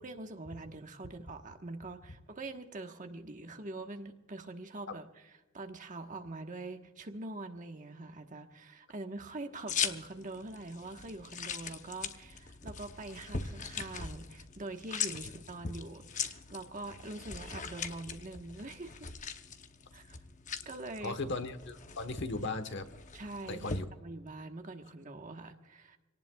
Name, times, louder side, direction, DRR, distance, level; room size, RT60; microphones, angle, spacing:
voice 1, 0.0-5.3 5.5-19.1 19.9-20.2 20.6-21.2 23.1-26.0, right 2 dB, 35° right, 5 dB, 1.3 m, -44 dB
sound 1, 9.7-23.8, left 6 dB, 35° left, 0.8 m, -41 dB
voice 2, 21.0-22.9 23.5-23.9, left 3 dB, 60° left, 9 dB, 1.2 m, -37 dB
25.5 x 18.0 x 2.3 m, 1.1 s
head